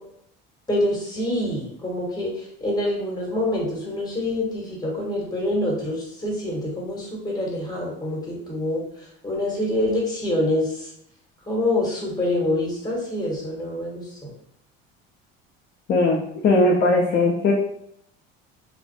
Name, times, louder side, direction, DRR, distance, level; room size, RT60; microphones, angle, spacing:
voice 1, 0.7-10.9 11.5-14.3, left 1 dB, 15° left, -3 dB, 1.1 m, -26 dB
voice 2, 15.9-17.5, left 2 dB, 35° left, -1 dB, 0.5 m, -19 dB
2.5 x 2.0 x 2.4 m, 0.73 s
hypercardioid pair, 75°, 30 cm